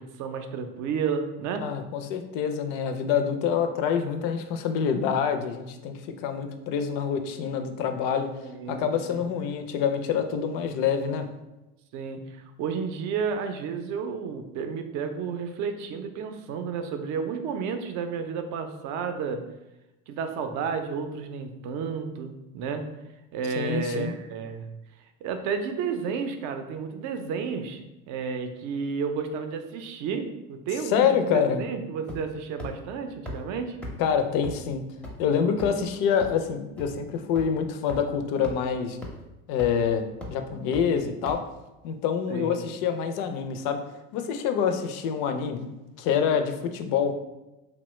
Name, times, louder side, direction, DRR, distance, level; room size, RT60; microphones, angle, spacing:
voice 1, 0.0-1.7 8.4-9.2 11.9-19.4 20.1-22.9 23.3-24.7 25.2-27.8 28.1-33.8 42.3-42.5, right 6 dB, 55° right, 7 dB, 0.5 m, -32 dB
voice 2, 1.6-8.3 8.7-11.3 23.6-24.1 30.9-31.6 34.0-34.8 35.2-39.0 39.5-41.4 41.8-43.8 44.1-45.6 46.0-47.1, left 7 dB, 60° left, 7 dB, 0.5 m, -26 dB
sound 1, 32.1-32.3 32.6-32.7 33.3-33.4 33.8-33.9 34.4-34.5 35.0-35.1 35.6-35.8 36.2-36.3 36.8-36.9 37.4-37.5 37.9-38.0 38.4-38.5 39.0-39.1 39.6-39.8 40.2-40.3 40.7-40.8 41.3-41.4, left 1 dB, 5° left, 0.5 m, -36 dB
2.8 x 2.1 x 3.0 m, 0.99 s
supercardioid pair, 95°, 36 cm